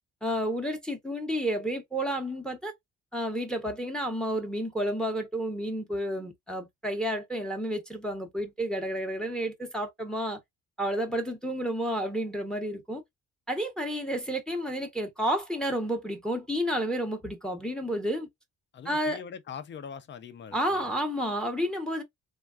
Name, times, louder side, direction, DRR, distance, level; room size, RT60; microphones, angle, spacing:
voice 1, 0.2-2.7 3.1-10.4 10.8-13.0 13.5-18.3 18.8-19.2 20.5-22.0, equal, ahead, 0.8 m, -31 dB
voice 2, 18.7-20.9, left 7 dB, 40° left, 0.5 m, -42 dB
3.3 x 2.3 x 2.3 m
cardioid pair, 90°, 30 cm